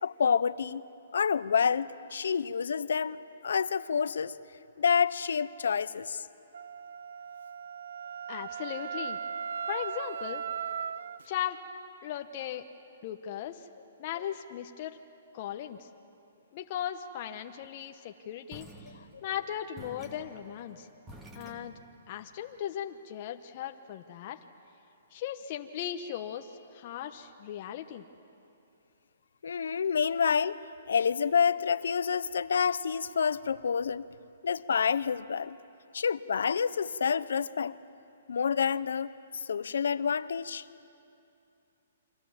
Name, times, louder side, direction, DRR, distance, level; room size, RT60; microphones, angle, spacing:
voice 1, 0.0-0.8 1.1-4.4 4.8-6.3 29.4-30.6 30.9-34.0 34.4-35.6 35.9-37.8 38.3-40.7, left 6 dB, 80° left, 16 dB, 0.8 m, -28 dB
Wind instrument woodwind instrument, 6.5-11.2, right 7 dB, 70° right, 0.6 m, -37 dB
voice 2, 8.3-9.2 9.7-10.4 11.2-11.6 12.0-12.6 13.0-13.7 14.0-15.0 15.3-15.9 16.5-18.9 19.2-20.9 21.3-21.7 22.1-24.4 25.1-28.0, left 10 dB, 35° left, 5 dB, 1.0 m, -37 dB
sound 1, 18.5-19.4 19.8-22.1, right 1 dB, 10° right, 2.3 m, -50 dB
29.0 x 24.5 x 7.3 m, 2.7 s
hypercardioid pair, 160°, 0 cm